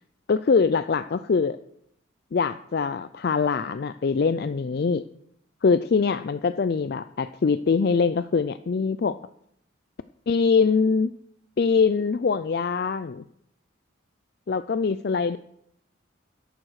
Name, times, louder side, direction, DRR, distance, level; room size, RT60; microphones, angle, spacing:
voice 1, 0.3-1.6 2.3-5.0 5.6-9.2 10.3-11.1 11.6-13.2 14.5-15.4, left 5 dB, 50° left, 13 dB, 0.4 m, -23 dB
13.0 x 11.0 x 4.8 m, 0.73 s
head